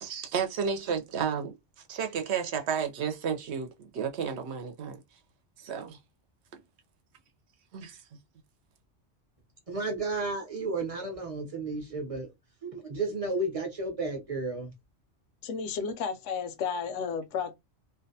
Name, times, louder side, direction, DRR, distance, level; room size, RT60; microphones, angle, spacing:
voice 1, 0.0-1.5 1.9-5.0 5.6-6.0 7.7-8.0, right 7 dB, 70° right, 0.9 m, -32 dB
voice 2, 9.7-12.3 12.6-14.7, right 2 dB, 35° right, 0.7 m, -32 dB
voice 3, 15.4-17.5, left 6 dB, 85° left, 0.9 m, -32 dB
2.5 x 2.2 x 2.6 m
omnidirectional pair, 1.2 m